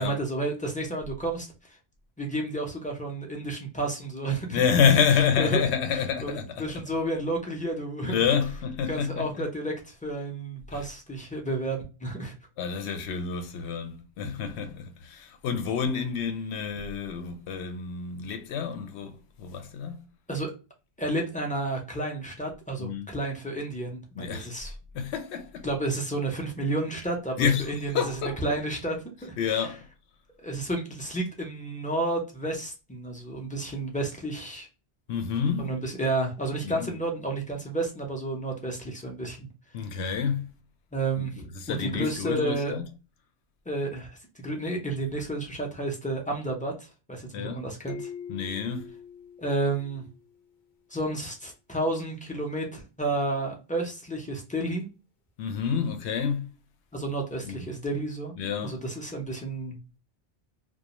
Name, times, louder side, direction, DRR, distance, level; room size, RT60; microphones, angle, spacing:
voice 1, 0.0-1.5 2.2-4.6 5.4-5.6 6.2-8.2 8.9-12.3 20.3-20.5 21.0-24.7 25.6-29.7 30.4-34.7 35.6-39.5 40.9-42.7 43.7-48.1 49.4-50.0 50.9-54.9 56.9-59.8, right 2 dB, 15° left, 0.3 m, -31 dB
voice 2, 4.5-6.6 8.0-9.4 10.7-10.9 12.6-20.0 22.8-23.1 24.2-24.5 24.9-25.7 27.4-28.4 29.4-29.8 35.1-35.7 36.6-36.9 39.7-40.5 41.2-42.8 47.3-47.6 48.3-48.9 55.4-56.5 57.4-57.6 58.4-58.8, left 7 dB, 90° left, 0.8 m, -28 dB
sound 1, 47.9-50.4, left 7 dB, 60° left, 0.6 m, -42 dB
2.4 x 2.0 x 2.9 m
omnidirectional pair, 1.1 m